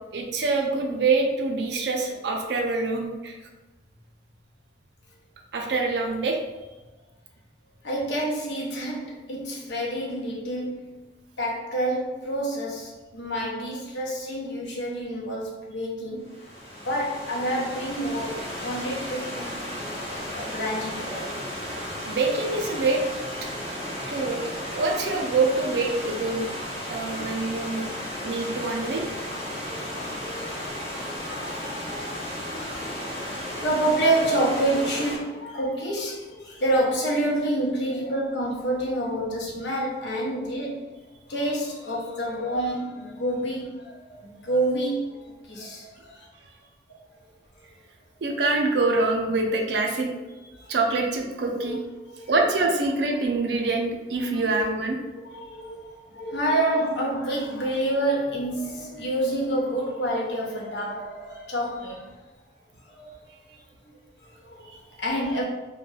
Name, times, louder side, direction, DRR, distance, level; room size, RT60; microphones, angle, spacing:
voice 1, 0.1-3.4 5.5-6.4 22.1-23.0 24.1-26.5 26.9-27.9 28.2-29.1 48.2-51.8 52.3-55.0, right 3 dB, 60° right, 2 dB, 0.4 m, -25 dB
voice 2, 7.8-11.1 11.4-16.3 16.7-19.5 20.3-21.4 21.7-22.2 29.1-40.9 41.3-46.3 46.9-47.2 50.2-50.3 50.6-50.7 51.6-51.8 52.1-52.4 54.3-54.5 55.3-62.2 62.8-63.2 64.2-65.4, right 1 dB, 65° left, -2 dB, 0.6 m, -28 dB
Stream / Liquid, 16.2-35.2, left 1 dB, 30° left, 1.0 m, -34 dB
2.3 x 2.1 x 3.1 m, 1.2 s
head